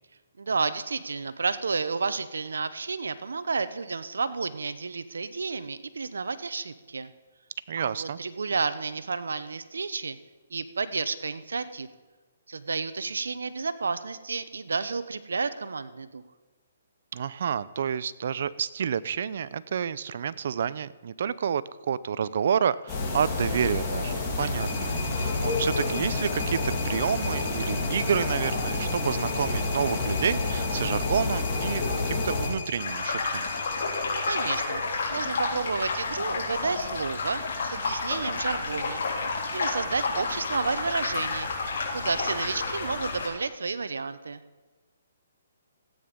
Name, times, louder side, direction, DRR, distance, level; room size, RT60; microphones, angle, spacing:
voice 1, 0.4-7.1 7.7-10.2 10.5-11.9 12.5-16.2 33.8-39.0 39.5-41.5 41.9-44.4, right 4 dB, 85° right, 13 dB, 0.8 m, -31 dB
voice 2, 7.7-8.2 17.1-33.5, right 7 dB, 60° right, 17 dB, 0.5 m, -29 dB
sound 1, 22.9-32.5, left 3 dB, 20° left, 3.1 m, -29 dB
sound 2, 24.6-34.7, left 4 dB, 40° left, 4.5 m, -39 dB
sound 3, 32.8-43.3, left 4 dB, 60° left, 3.7 m, -30 dB
14.5 x 8.9 x 5.3 m, 1.3 s
hypercardioid pair, 150°, 0 cm